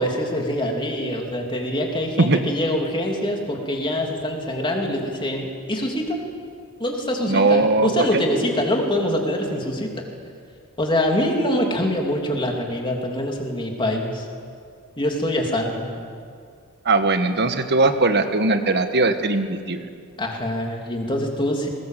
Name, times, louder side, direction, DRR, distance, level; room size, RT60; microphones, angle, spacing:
voice 1, 0.0-6.2 6.8-9.9 10.8-14.3 15.0-15.9 20.2-21.7, left 1 dB, 20° left, 1 dB, 3.1 m, -24 dB
voice 2, 7.3-8.1 16.8-19.9, right 3 dB, 50° right, 8 dB, 1.4 m, -19 dB
21.5 x 20.0 x 7.6 m, 2.2 s
head